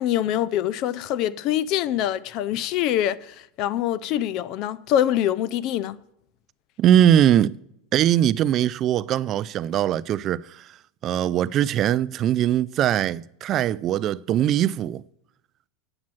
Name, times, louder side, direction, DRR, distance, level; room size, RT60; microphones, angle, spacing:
voice 1, 0.0-6.0, left 11 dB, 50° left, 0.5 m, -24 dB
voice 2, 6.8-7.6 7.9-10.7 11.0-15.0, right 11 dB, 40° right, 0.3 m, -21 dB
8.8 x 7.3 x 7.5 m
supercardioid pair, 125°, 0 cm